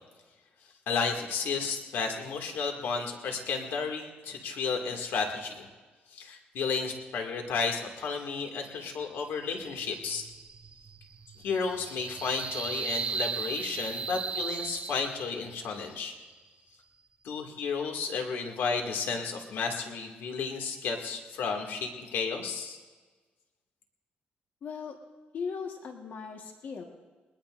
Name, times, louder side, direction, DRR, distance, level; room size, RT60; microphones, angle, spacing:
voice 1, 0.9-5.7 6.1-10.3 11.4-16.1 17.2-22.8, left 5 dB, 85° left, 3 dB, 2.1 m, -32 dB
sound 1, 9.6-15.6, right 5 dB, 35° right, 0.5 m, -37 dB
voice 2, 24.6-25.0 25.3-26.8, left 5 dB, 60° left, 3 dB, 1.4 m, -38 dB
20.5 x 20.5 x 2.5 m, 1.3 s
cardioid pair, 130°, 4 cm